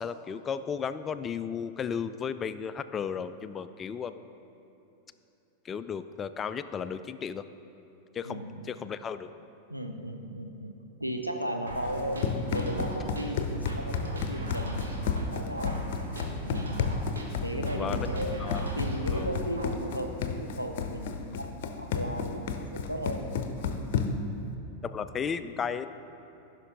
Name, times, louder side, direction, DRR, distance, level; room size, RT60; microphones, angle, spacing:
voice 1, 0.0-4.2 5.6-7.4 8.1-9.3 17.7-18.1 18.4-18.7 19.1-19.3 24.8-25.9, left 7 dB, 25° left, 12 dB, 0.3 m, -34 dB
voice 2, 8.2-8.7 9.7-10.7 11.0-15.7 16.4-16.9 17.4-18.4 18.7-23.2, equal, 90° right, 4 dB, 0.7 m, -36 dB
sound 1, 11.7-19.7, right 1 dB, 70° right, 1.2 m, -37 dB
Run, 11.9-24.3, left 5 dB, 50° left, 0.7 m, -32 dB
15.0 x 6.0 x 3.8 m, 3.0 s
figure-of-eight pair, 90°, 0 cm